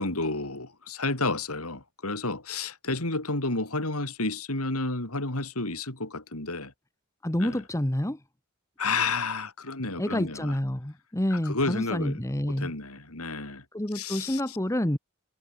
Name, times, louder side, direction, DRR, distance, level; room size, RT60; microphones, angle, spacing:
voice 1, 0.0-6.7 7.4-7.6 8.8-10.6 11.3-12.2 12.5-13.6 13.9-14.6, left 3 dB, 75° left, 4.5 m, -31 dB
voice 2, 7.2-8.2 10.0-12.7 13.7-15.0, left 1 dB, 15° left, 1.2 m, -28 dB
head